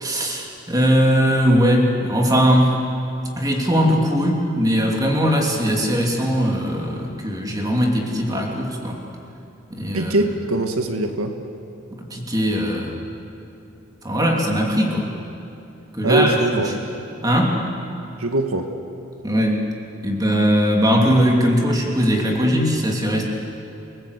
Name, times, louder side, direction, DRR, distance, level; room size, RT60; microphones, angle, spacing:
voice 1, 0.0-2.8 3.4-9.0 9.7-10.1 12.1-12.9 14.0-15.1 15.9-16.7 17.2-17.6 19.2-19.6 20.0-23.2, equal, 15° right, 0 dB, 3.0 m, -20 dB
voice 2, 9.9-11.3 16.0-16.7 18.2-18.7, right 2 dB, 90° right, 6 dB, 1.7 m, -21 dB
29.0 x 18.5 x 8.3 m, 2.7 s
head